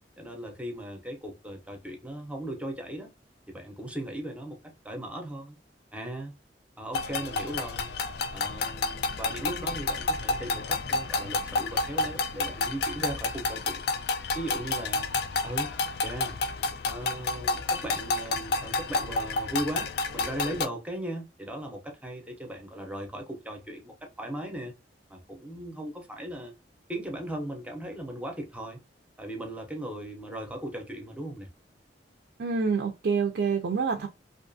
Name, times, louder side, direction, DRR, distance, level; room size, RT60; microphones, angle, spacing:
voice 1, 0.2-3.1 3.5-4.6 4.8-5.6 5.9-6.3 6.8-7.9 8.3-13.8 14.3-15.1 15.4-15.7 16.0-16.4 16.8-24.7 25.1-26.5 26.9-28.8 29.2-31.5, right 1 dB, 5° right, 0.6 m, -37 dB
sound 1, 6.9-20.7, left 3 dB, 60° left, 0.3 m, -30 dB
voice 2, 32.4-34.1, right 5 dB, 65° right, 0.4 m, -27 dB
2.5 x 2.3 x 2.5 m
head